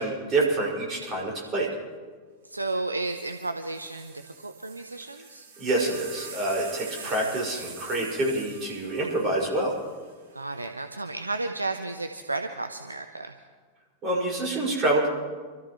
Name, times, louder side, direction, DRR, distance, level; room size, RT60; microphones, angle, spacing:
voice 1, 0.0-1.7 5.6-9.7 14.0-15.1, right 2 dB, 30° right, -4 dB, 5.6 m, -27 dB
voice 2, 2.4-5.5 10.3-13.3, right 2 dB, 80° right, 6 dB, 0.7 m, -33 dB
sound 1, 2.7-2.8 3.0-10.4 11.3-11.8, right 5 dB, 50° right, 2.6 m, -45 dB
27.0 x 13.5 x 3.2 m, 1.5 s
figure-of-eight pair, 90°, 0 cm